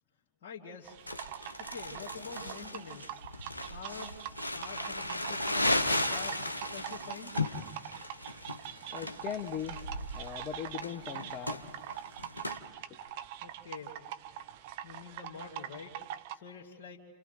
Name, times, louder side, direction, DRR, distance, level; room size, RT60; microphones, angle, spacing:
voice 1, 0.4-1.0 1.6-3.2 3.7-4.2 4.5-7.3 13.4-14.0 14.8-16.0 16.3-17.0, left 6 dB, 55° left, -3 dB, 2.3 m, -46 dB
sound 1, 0.8-16.3, right 11 dB, 50° right, 0.9 m, -44 dB
Crumpling crinkling, 1.1-12.6, left 2 dB, 85° left, 1.0 m, -35 dB
voice 2, 8.9-9.8 10.1-11.6 12.9-13.0, left 9 dB, 35° left, 6 dB, 1.0 m, -39 dB
30.0 x 28.0 x 4.1 m, 1.4 s
figure-of-eight pair, 90°, 0 cm